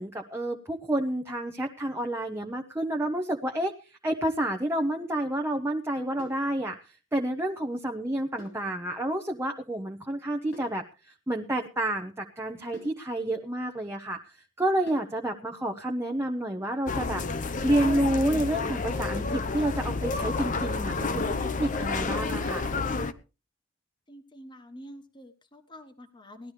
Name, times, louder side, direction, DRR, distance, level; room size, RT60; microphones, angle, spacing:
voice 1, 0.0-3.7 4.0-6.7 7.1-10.8 11.3-14.3 14.6-17.2 17.6-22.7, right 1 dB, 15° right, 3 dB, 0.8 m, -29 dB
sound 1, 6.2-6.5 8.4-8.7 10.5-10.8 12.7-13.0 14.9-15.2 17.0-17.3 19.2-19.5 21.3-21.6, equal, 85° left, 3.8 m, -48 dB
sound 2, 16.9-23.1, left 3 dB, 40° left, 0.7 m, -30 dB
voice 2, 24.1-26.5, equal, 25° left, 6 dB, 1.2 m, -47 dB
18.5 x 12.0 x 3.3 m, 0.32 s
head